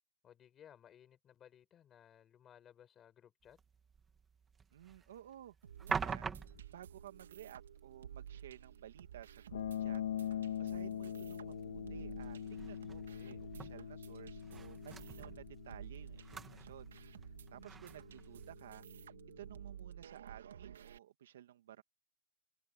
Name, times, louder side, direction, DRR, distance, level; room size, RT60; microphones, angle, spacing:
voice 1, 0.2-3.6 13.1-13.5, left 9 dB, 15° left, 5.6 m, -61 dB
sound 1, 3.4-18.8, right 6 dB, 10° right, 1.8 m, -48 dB
voice 2, 4.7-6.3 6.7-21.8, right 11 dB, 55° right, 2.0 m, -55 dB
sound 2, 5.6-21.0, right 9 dB, 90° right, 3.0 m, -53 dB
sound 3, 9.5-19.6, left 9 dB, 70° left, 2.6 m, -44 dB
hypercardioid pair, 180°, 0 cm